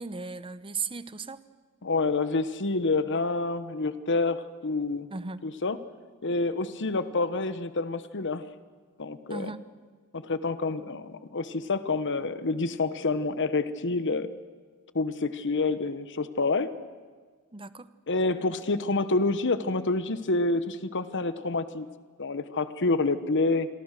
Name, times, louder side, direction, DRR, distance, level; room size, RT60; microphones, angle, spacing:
voice 1, 0.0-1.4 5.1-5.4 9.3-9.6 17.5-17.9, right 4 dB, 25° right, 14 dB, 0.9 m, -36 dB
voice 2, 1.8-5.1 5.4-5.8 6.2-8.4 9.0-9.5 10.1-14.3 14.9-16.7 18.1-21.9 22.2-23.7, left 3 dB, 55° left, 13 dB, 1.2 m, -28 dB
27.5 x 23.0 x 6.7 m, 1.5 s
head